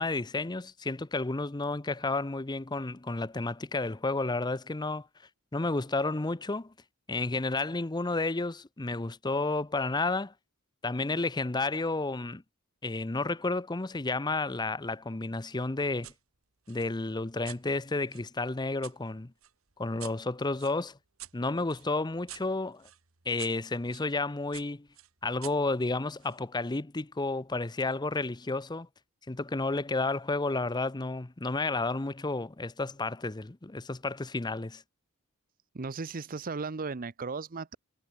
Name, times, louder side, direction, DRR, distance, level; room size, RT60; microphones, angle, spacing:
voice 1, 0.0-5.1 5.5-6.7 7.1-10.3 10.8-12.4 12.8-16.1 16.7-19.3 19.8-21.0 21.3-22.9 23.3-24.9 25.2-28.9 29.3-34.8, left 3 dB, 20° left, 0.7 m, -31 dB
sound 1, 16.0-16.2 16.7-19.0 19.4-24.1 24.5-26.4, right 14 dB, 65° right, 2.1 m, -50 dB
voice 2, 35.7-37.8, right 4 dB, 40° right, 0.7 m, -36 dB
head